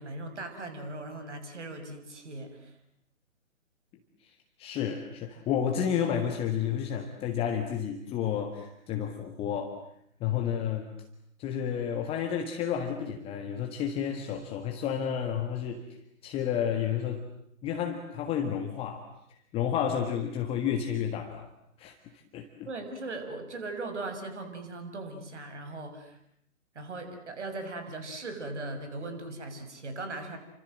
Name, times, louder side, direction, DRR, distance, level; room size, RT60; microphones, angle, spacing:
voice 1, 0.0-2.8 22.6-26.2 26.7-30.4, right 2 dB, 55° right, 8 dB, 6.6 m, -39 dB
voice 2, 4.2-9.8 10.2-10.9 11.4-15.9 16.2-17.2 17.6-21.5 21.8-22.7, left 8 dB, 15° left, 4 dB, 1.6 m, -31 dB
29.5 x 25.0 x 7.7 m, 0.73 s
figure-of-eight pair, 135°, 41 cm